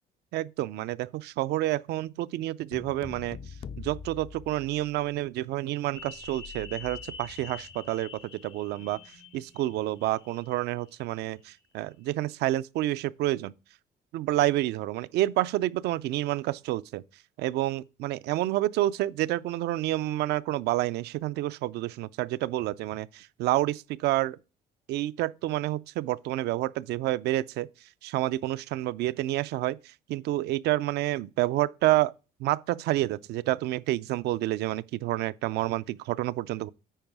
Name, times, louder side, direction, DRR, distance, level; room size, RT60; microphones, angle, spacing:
voice 1, 0.3-3.4 3.8-8.1 8.4-9.0 9.3-13.5 14.1-17.0 17.4-24.4 24.9-27.7 28.0-29.8 30.1-32.1 32.4-36.7, right 15 dB, 75° right, 0.5 m, -29 dB
sound 1, 2.7-5.3, left 6 dB, 35° left, 0.3 m, -43 dB
sound 2, 5.9-11.3 11.6-11.7, left 5 dB, 80° left, 1.2 m, -46 dB
9.1 x 4.9 x 4.6 m
cardioid pair, 110°, 17 cm